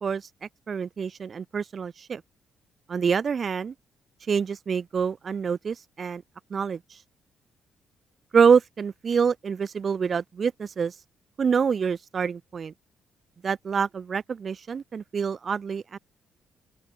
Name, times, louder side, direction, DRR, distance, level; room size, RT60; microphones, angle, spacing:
voice 1, 0.7-2.2 2.9-3.7 4.3-6.2 6.5-7.0 8.3-11.0 11.4-12.7 13.4-16.0, right 6 dB, 45° right, 1.2 m, -26 dB
open air
cardioid pair, 90°, 0 cm